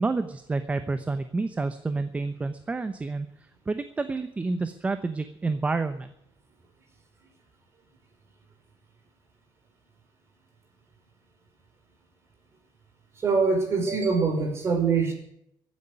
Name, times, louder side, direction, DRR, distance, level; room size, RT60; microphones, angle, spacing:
voice 1, 0.0-3.3 3.7-6.1, right 3 dB, 15° right, 10 dB, 0.9 m, -29 dB
voice 2, 13.2-15.1, right 4 dB, 30° right, 4 dB, 5.2 m, -24 dB
15.0 x 9.8 x 9.6 m, 0.74 s
cardioid pair, 150°, 8 cm